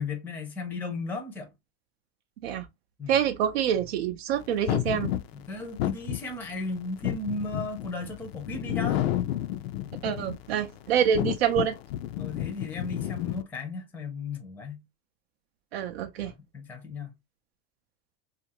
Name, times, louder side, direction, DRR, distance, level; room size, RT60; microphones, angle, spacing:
voice 1, 0.0-1.5 3.0-3.2 5.3-9.0 12.1-14.8 16.2-17.1, left 3 dB, 5° left, 0.5 m, -35 dB
voice 2, 3.1-5.1 10.0-11.8 15.7-16.3, right 9 dB, 90° right, 0.5 m, -26 dB
sound 1, 4.7-10.5 11.0-13.4, left 13 dB, 80° left, 0.5 m, -31 dB
2.5 x 2.5 x 2.8 m
supercardioid pair, 130°, 30 cm